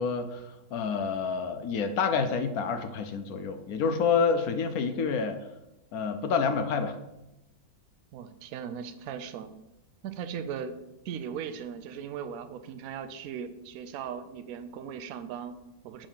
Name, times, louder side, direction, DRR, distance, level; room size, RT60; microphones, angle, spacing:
voice 1, 0.0-5.5 5.9-7.0, left 5 dB, 70° left, 8 dB, 0.9 m, -28 dB
voice 2, 8.1-9.6 10.0-10.8 11.0-16.1, right 7 dB, 70° right, 9 dB, 0.8 m, -38 dB
5.1 x 5.1 x 5.6 m, 0.94 s
omnidirectional pair, 2.0 m